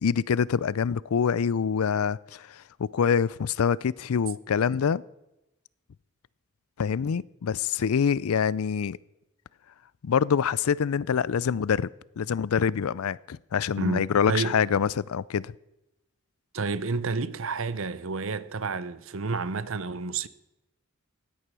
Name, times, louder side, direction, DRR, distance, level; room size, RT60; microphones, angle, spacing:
voice 1, 0.0-5.0 6.8-9.0 10.0-11.9 12.2-15.5, left 7 dB, 85° left, 0.4 m, -25 dB
voice 2, 13.8-14.6 16.5-20.3, right 4 dB, 65° right, 0.8 m, -30 dB
16.5 x 9.9 x 6.1 m
head